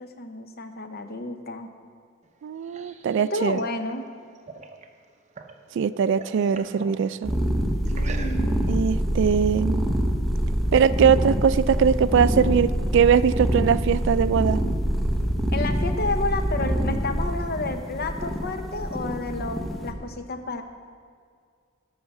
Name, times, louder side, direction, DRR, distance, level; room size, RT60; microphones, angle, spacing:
voice 1, 0.0-1.7 3.2-4.1 7.9-8.6 15.5-20.6, left 2 dB, 50° left, 7 dB, 0.9 m, -31 dB
sound 1, 2.2-5.6 5.9-7.0 7.9-8.7, right 4 dB, 35° right, 0.7 m, -43 dB
voice 2, 2.4-3.6 5.8-7.3 8.7-9.8 10.7-14.6, right 7 dB, 65° right, 16 dB, 0.3 m, -21 dB
sound 2, 7.2-19.9, equal, ahead, 0.9 m, -25 dB
11.5 x 5.7 x 7.1 m, 2.1 s
head